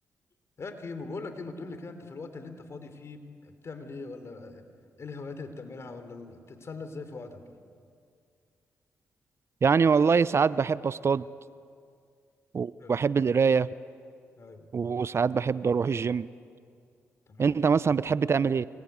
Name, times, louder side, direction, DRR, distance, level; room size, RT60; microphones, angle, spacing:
voice 1, 0.6-4.6 5.0-7.6 12.8-13.0 14.3-14.7 17.3-17.6, left 3 dB, 50° left, 8 dB, 3.5 m, -41 dB
voice 2, 9.6-11.2 12.5-13.7 14.7-16.3 17.4-18.7, right 5 dB, 45° right, 18 dB, 0.6 m, -24 dB
28.0 x 20.0 x 9.5 m, 2.3 s
supercardioid pair, 50°, 6 cm